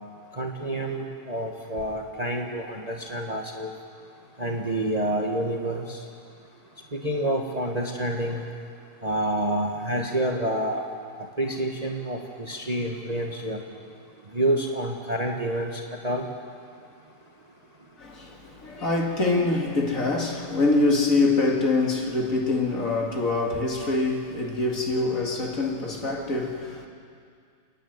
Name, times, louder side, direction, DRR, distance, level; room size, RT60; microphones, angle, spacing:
voice 1, 0.3-3.7 4.4-6.0 6.9-8.4 9.0-10.8 11.4-13.6 14.3-16.3, right 1 dB, 25° right, 1.3 m, -28 dB
voice 2, 18.0-26.9, left 3 dB, 50° left, 2.5 m, -25 dB
30.0 x 10.0 x 9.4 m
omnidirectional pair, 1.9 m